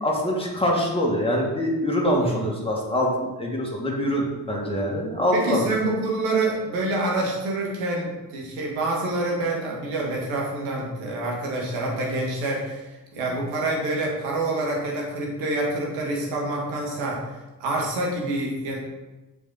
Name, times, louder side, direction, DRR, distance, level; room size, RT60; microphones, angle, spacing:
voice 1, 0.0-5.7, equal, 10° left, -2 dB, 2.1 m, -24 dB
voice 2, 2.1-2.5 5.3-17.2 17.6-18.8, right 2 dB, 70° right, -2 dB, 1.8 m, -27 dB
7.1 x 4.3 x 4.0 m, 1.1 s
figure-of-eight pair, 40°, 49 cm